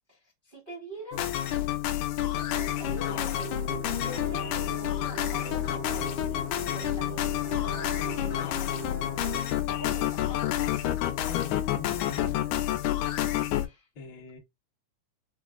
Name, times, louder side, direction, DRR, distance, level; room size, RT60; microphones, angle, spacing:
voice 1, 0.4-1.3 2.2-3.6 3.9-7.3 8.0-8.8 9.7-10.7 13.6-13.9, equal, 75° right, 0.4 m, -44 dB
sound 1, 1.1-13.7, left 12 dB, 85° left, 1.7 m, -29 dB
sound 2, 2.5-9.4, right 5 dB, 35° left, 0.5 m, -41 dB
voice 2, 11.3-12.6 14.0-14.4, left 5 dB, 60° left, 1.2 m, -41 dB
6.0 x 2.0 x 2.3 m
omnidirectional pair, 3.9 m